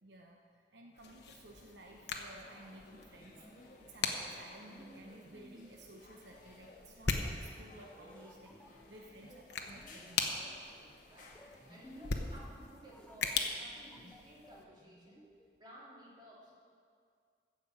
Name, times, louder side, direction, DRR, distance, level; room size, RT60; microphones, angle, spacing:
voice 1, 0.0-10.4, right 1 dB, 70° right, 0 dB, 0.9 m, -55 dB
sound 1, 0.9-12.5, left 2 dB, 45° left, 1.6 m, -60 dB
sound 2, 1.0-14.6, left 4 dB, 65° left, 1.0 m, -41 dB
sound 3, 3.2-15.6, equal, 5° left, 0.6 m, -59 dB
voice 2, 10.0-15.2 15.6-16.6, equal, 25° right, -7 dB, 2.8 m, -57 dB
15.0 x 5.2 x 7.5 m, 2.2 s
head